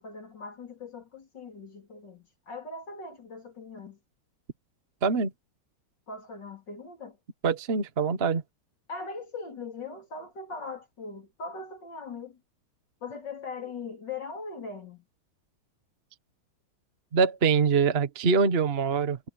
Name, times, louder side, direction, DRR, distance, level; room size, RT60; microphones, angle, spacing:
voice 1, 0.0-4.0 6.1-7.2 8.9-12.4 13.0-15.1, left 4 dB, 55° left, 4.3 m, -40 dB
voice 2, 7.4-8.4 17.1-19.2, right 5 dB, 35° right, 1.2 m, -24 dB
omnidirectional pair, 2.2 m